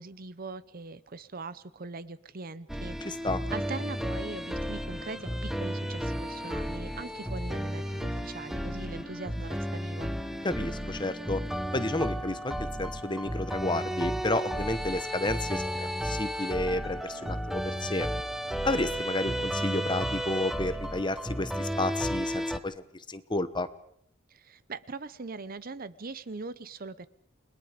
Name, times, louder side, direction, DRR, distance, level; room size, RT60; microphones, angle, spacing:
voice 1, 0.0-3.2 3.5-10.1 24.3-27.1, right 3 dB, 45° right, 16 dB, 0.8 m, -41 dB
sound 1, 2.7-22.6, equal, ahead, 0.9 m, -33 dB
sound 2, 3.0-20.5, left 2 dB, 75° left, 2.9 m, -51 dB
voice 2, 3.0-3.4 10.4-11.4 11.7-18.1 18.6-23.7, left 2 dB, 20° left, 12 dB, 1.1 m, -31 dB
29.5 x 21.5 x 5.1 m, 0.70 s
head